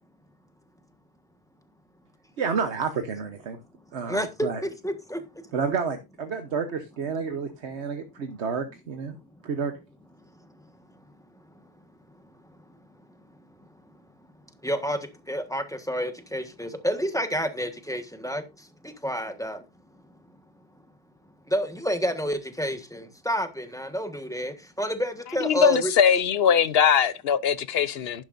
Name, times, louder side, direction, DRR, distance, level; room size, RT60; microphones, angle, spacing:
voice 1, 2.4-3.6 3.9-4.6 5.5-9.1 9.4-9.7, right 5 dB, 70° right, 1.2 m, -30 dB
voice 2, 4.1-5.2 14.6-15.0 15.3-18.4 18.8-19.6 21.5-25.9, equal, 5° left, 1.3 m, -29 dB
voice 3, 25.4-28.2, left 8 dB, 60° left, 0.9 m, -21 dB
11.0 x 11.0 x 2.6 m
omnidirectional pair, 1.2 m